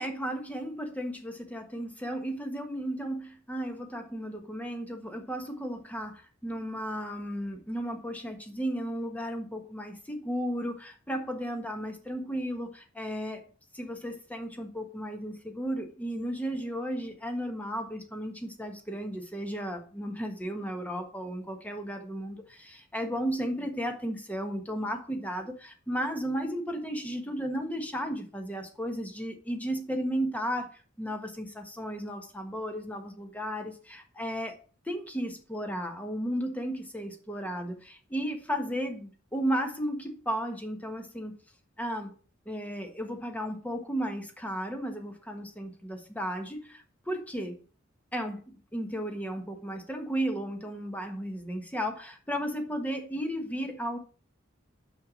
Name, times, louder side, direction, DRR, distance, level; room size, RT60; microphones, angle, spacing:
voice 1, 0.0-13.5 13.7-34.6 34.8-41.3 41.8-42.1 42.4-47.6 48.1-54.0, equal, 10° left, 4 dB, 1.3 m, -34 dB
6.0 x 5.7 x 6.1 m, 0.39 s
head